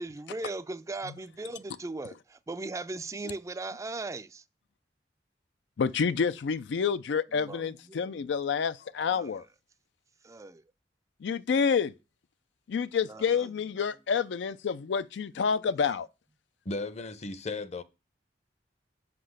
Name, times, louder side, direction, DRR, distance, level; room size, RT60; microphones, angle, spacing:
voice 1, 0.0-4.4 7.3-8.3 9.1-9.3 10.2-10.6 13.1-13.5 15.8-15.9, right 2 dB, 20° right, 0.3 m, -38 dB
voice 2, 5.8-9.4 11.2-11.9 12.7-16.1, left 6 dB, 85° left, 0.4 m, -28 dB
voice 3, 16.6-17.8, left 3 dB, 40° left, 0.6 m, -35 dB
6.0 x 5.5 x 6.4 m
head